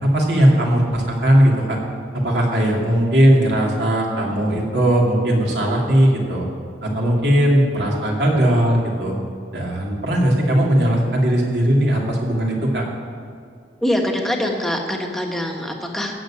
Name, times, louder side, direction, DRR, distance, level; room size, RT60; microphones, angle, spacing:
voice 1, 0.0-1.8 2.1-6.5 6.8-9.2 9.5-12.8, right 1 dB, 65° right, -2 dB, 2.8 m, -18 dB
voice 2, 13.8-16.2, left 1 dB, ahead, 1 dB, 1.3 m, -23 dB
15.0 x 6.9 x 8.8 m, 2.2 s
head